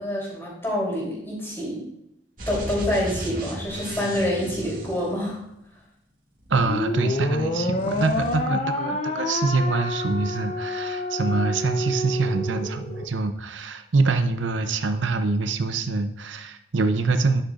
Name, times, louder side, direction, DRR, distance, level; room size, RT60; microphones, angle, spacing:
voice 1, 0.0-1.9 2.5-5.4, left 1 dB, 15° left, -5 dB, 3.1 m, -27 dB
sound 1, 2.4-5.7 6.4-7.5 7.7-8.4, right 1 dB, 45° right, 2.0 m, -36 dB
voice 2, 6.5-17.4, right 3 dB, 85° right, 8 dB, 0.6 m, -25 dB
sound 2, 6.6-13.1, left 1 dB, 35° left, 0.7 m, -28 dB
10.0 x 8.1 x 2.5 m, 0.79 s
head